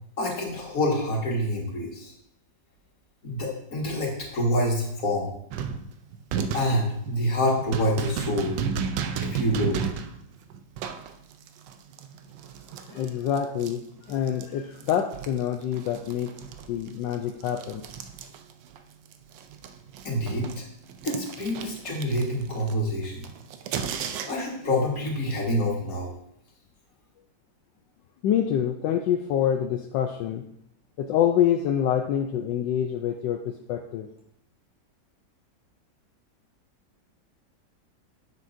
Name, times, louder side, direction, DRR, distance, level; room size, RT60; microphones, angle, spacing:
voice 1, 0.2-2.1 3.2-5.3 6.5-8.6 9.2-9.8 20.0-20.7 21.0-23.3 24.2-26.1, left 1 dB, 50° left, -2 dB, 2.1 m, -27 dB
sound 1, 5.5-14.5 14.8-18.8 19.1-24.6, right 7 dB, 85° right, 1.3 m, -34 dB
voice 2, 12.9-13.8 14.1-16.3 16.7-17.8 28.2-30.4 31.0-34.1, left 9 dB, 80° left, 3 dB, 1.2 m, -26 dB
9.4 x 7.4 x 2.6 m, 0.74 s
omnidirectional pair, 1.9 m